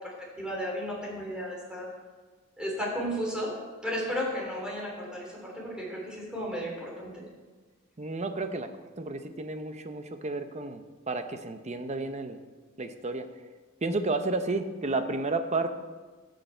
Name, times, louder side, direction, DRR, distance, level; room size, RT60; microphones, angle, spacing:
voice 1, 0.0-1.9 2.6-3.6 3.8-7.2, equal, 5° right, -4 dB, 3.2 m, -34 dB
voice 2, 8.0-8.7 9.0-12.4 12.8-13.3 13.8-15.7, right 3 dB, 35° right, 8 dB, 0.7 m, -31 dB
16.5 x 6.7 x 4.4 m, 1.4 s
head